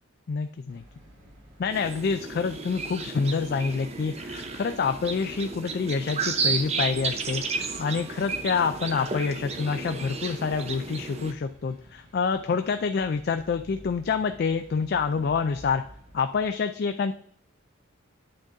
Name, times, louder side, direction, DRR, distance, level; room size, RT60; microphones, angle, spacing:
voice 1, 0.3-0.8 1.6-15.8 16.1-17.1, left 5 dB, 50° left, 8 dB, 0.3 m, -27 dB
sound 1, 0.7-16.5, equal, 80° right, 2.6 m, -52 dB
sound 2, 1.7-11.3, right 4 dB, 30° right, 0.6 m, -33 dB
8.7 x 3.9 x 3.9 m, 0.65 s
head